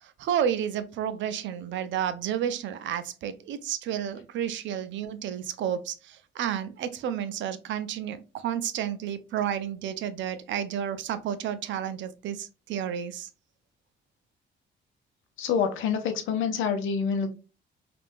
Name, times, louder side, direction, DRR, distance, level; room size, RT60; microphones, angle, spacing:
voice 1, 0.0-13.3, right 9 dB, 70° right, 0.4 m, -31 dB
voice 2, 15.4-17.3, left 6 dB, 80° left, 0.6 m, -27 dB
3.5 x 2.5 x 2.5 m
cardioid pair, 90°, 20 cm